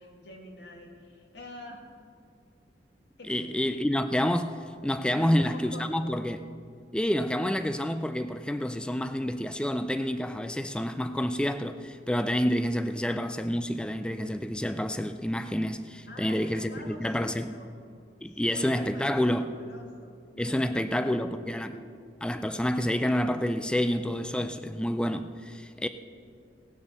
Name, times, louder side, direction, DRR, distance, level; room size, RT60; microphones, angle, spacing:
voice 1, 0.0-1.8 3.2-3.5 5.1-5.9 16.1-17.7 18.3-21.9, left 1 dB, 90° left, 2.3 m, -46 dB
voice 2, 3.3-6.4 6.9-17.5 18.2-19.5 20.4-21.8 22.2-25.9, equal, 5° left, 0.3 m, -28 dB
18.0 x 6.9 x 6.6 m
head